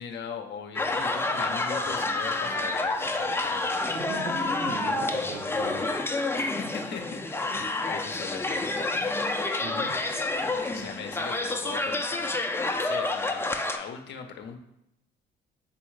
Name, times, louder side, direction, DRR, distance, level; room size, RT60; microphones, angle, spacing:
voice 1, 0.0-3.8 6.4-8.9 10.6-12.3 12.6-13.4 13.7-14.6, left 6 dB, 60° left, 5 dB, 0.6 m, -39 dB
sound 1, 0.7-13.8, left 2 dB, 10° left, 0.5 m, -29 dB
voice 2, 3.9-5.9 9.6-9.9, right 3 dB, 60° right, 1 dB, 1.0 m, -37 dB
4.1 x 3.4 x 3.2 m, 0.82 s
supercardioid pair, 60°, 21 cm